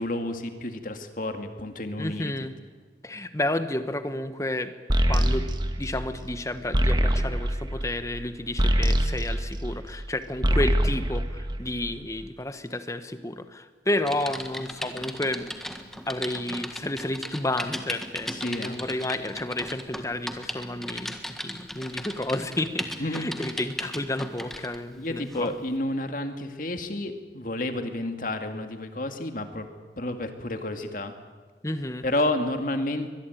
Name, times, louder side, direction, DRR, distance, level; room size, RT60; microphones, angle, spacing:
voice 1, 0.0-2.5 18.3-18.8 23.0-23.3 25.0-29.7 30.0-31.2 32.0-33.1, left 1 dB, 45° left, 7 dB, 2.2 m, -30 dB
voice 2, 2.0-2.5 3.0-4.7 5.1-5.5 5.8-15.4 16.1-21.1 21.4-25.5 31.6-32.0, left 1 dB, 15° left, 10 dB, 1.3 m, -31 dB
sound 1, 4.9-10.1 10.3-12.1, equal, 25° right, 1.6 m, -24 dB
Typing, 14.0-24.8 25.3-25.5, equal, ahead, 1.5 m, -37 dB
23.0 x 22.0 x 9.3 m, 1.4 s
head